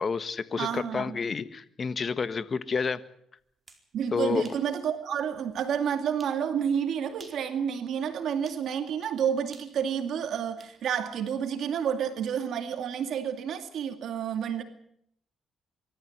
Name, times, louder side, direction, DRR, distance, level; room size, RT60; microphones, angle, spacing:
voice 1, 0.0-3.0 4.1-4.6, left 5 dB, 40° left, 1.4 m, -29 dB
voice 2, 0.6-1.2 3.9-14.6, right 8 dB, 70° right, 2.2 m, -30 dB
sound 1, 3.5-3.9 4.4-4.7 5.2-5.3 6.2-6.4 7.1-7.5 8.5-8.7 9.5-10.8, right 3 dB, 30° right, 4.4 m, -52 dB
24.5 x 13.5 x 9.6 m
cardioid pair, 90°, 0 cm